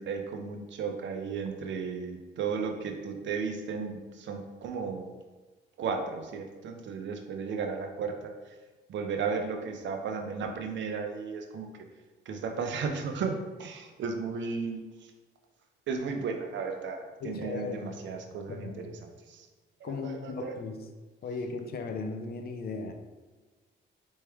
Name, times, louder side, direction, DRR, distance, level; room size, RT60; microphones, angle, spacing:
voice 1, 0.0-5.0 5.8-8.1 8.5-8.6 8.9-11.7 12.2-15.1 15.9-19.0 19.3-19.5 19.8-20.6, right 5 dB, 65° right, 4 dB, 0.7 m, -34 dB
voice 2, 17.2-18.0 18.5-19.0 19.8-20.8 21.2-22.9, left 4 dB, 50° left, 6 dB, 0.6 m, -37 dB
4.5 x 3.2 x 3.5 m, 1.3 s
cardioid pair, 90°, 20 cm